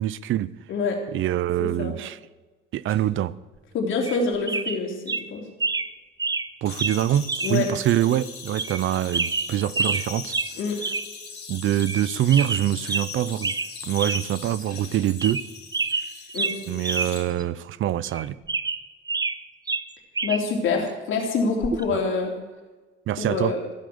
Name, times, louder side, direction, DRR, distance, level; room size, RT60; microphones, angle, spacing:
voice 1, 0.0-0.5 1.1-2.2 2.7-3.3 6.6-10.4 11.5-13.5 13.8-15.4 16.7-18.4 21.9-22.0 23.1-23.5, right 12 dB, 75° right, 0.6 m, -24 dB
voice 2, 1.6-1.9 3.7-5.4 7.4-7.7 10.6-10.8 16.3-16.5 20.2-22.3 23.2-23.6, left 4 dB, 70° left, 3.6 m, -26 dB
sound 1, 4.0-4.2 4.5-4.8 5.1-5.2 5.6-5.9 6.2-6.5 6.8-7.0 7.3-7.5 7.9-8.0 8.6-8.8 9.1-10.0 10.3-10.5 10.8-11.1 11.4-11.5 11.8-12.0 12.3-13.1 13.4-13.7 14.0-14.2 14.6-14.7 15.1-15.5 15.7-17.1 17.4-17.5 18.0-19.4 19.7-20.4 21.6-21.8, right 4 dB, 20° right, 0.7 m, -27 dB
sound 2, 6.7-17.2, left 5 dB, 50° left, 3.7 m, -40 dB
15.5 x 8.5 x 8.0 m
cardioid pair, 120°, 21 cm